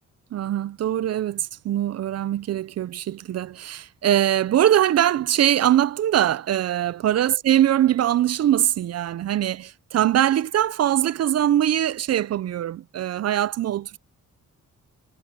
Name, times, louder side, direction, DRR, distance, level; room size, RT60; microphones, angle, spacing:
voice 1, 0.3-14.0, right 11 dB, 55° right, 0.4 m, -22 dB
wide cardioid pair, 135°, 31 cm